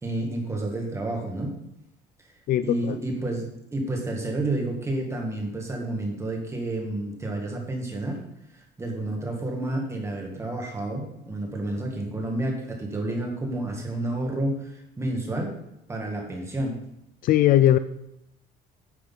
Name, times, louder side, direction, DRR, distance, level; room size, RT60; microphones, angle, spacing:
voice 1, 0.0-1.6 2.6-8.2 8.5-15.5 15.9-16.8, right 2 dB, 15° right, 2.0 m, -30 dB
voice 2, 2.5-3.0 17.2-17.8, left 13 dB, 55° left, 0.4 m, -19 dB
9.9 x 6.5 x 4.0 m
cardioid pair, 145°, 17 cm